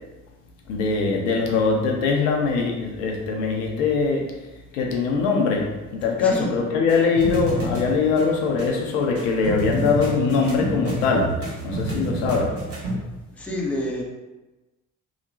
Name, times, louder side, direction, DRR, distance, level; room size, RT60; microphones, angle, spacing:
voice 1, 0.7-4.2 4.7-11.3 11.6-12.5, left 4 dB, 65° left, 0 dB, 0.5 m, -22 dB
voice 2, 6.2-6.5 13.4-14.0, left 1 dB, 5° left, -3 dB, 0.5 m, -28 dB
sound 1, 6.9-12.9, right 2 dB, 35° right, 1.0 m, -29 dB
2.8 x 2.1 x 2.7 m, 1.1 s
figure-of-eight pair, 45°, 39 cm